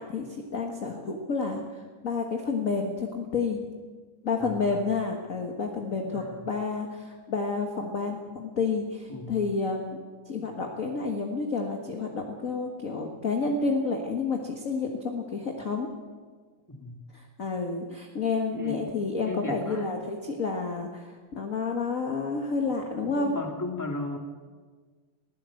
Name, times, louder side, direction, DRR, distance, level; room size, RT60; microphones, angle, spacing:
voice 1, 0.0-1.6 2.0-3.6 4.2-10.0 10.2-15.9 17.1-23.4, left 4 dB, 40° left, 2 dB, 1.2 m, -30 dB
voice 2, 4.4-4.8 6.1-6.4 9.1-9.4 16.7-17.0 18.5-18.9 19.2-19.9 22.6-22.7 23.0-24.2, left 2 dB, 5° left, 2 dB, 1.9 m, -36 dB
21.5 x 16.0 x 7.7 m, 1.5 s
omnidirectional pair, 3.6 m